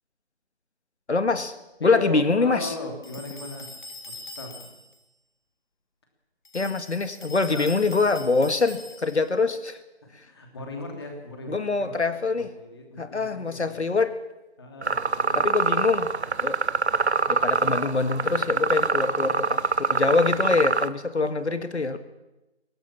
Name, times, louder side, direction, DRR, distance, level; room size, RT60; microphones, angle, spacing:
voice 1, 1.1-1.5 1.8-2.7 6.5-9.8 11.5-12.5 13.0-14.1 15.4-16.1 16.4-16.6 17.3-19.6 19.9-22.0, left 3 dB, 80° left, 10 dB, 1.8 m, -24 dB
voice 2, 1.8-3.7 4.1-4.7 7.4-7.7 10.0-12.0 12.3-13.8 14.6-15.4 19.0-19.4, left 2 dB, 25° left, 3 dB, 3.0 m, -38 dB
sound 1, 3.0-5.0 6.5-9.3, left 2 dB, 45° left, 3.4 m, -43 dB
sound 2, 14.8-20.9, right 4 dB, 75° right, 1.1 m, -25 dB
24.0 x 18.0 x 7.3 m, 1.0 s
figure-of-eight pair, 170°, 33 cm